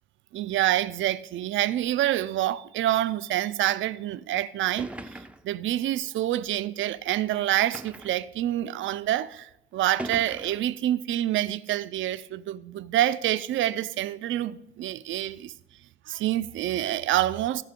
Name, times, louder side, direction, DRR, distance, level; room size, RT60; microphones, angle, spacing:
voice 1, 0.3-4.9 5.4-15.5 16.1-17.6, right 13 dB, 75° right, 0.5 m, -27 dB
sound 1, 4.2-4.3 4.8-5.6 6.5-6.6 7.7-8.3 9.2-9.3 10.0-10.7, right 1 dB, 5° right, 0.5 m, -39 dB
16.0 x 5.7 x 3.7 m
cardioid pair, 90°, 20 cm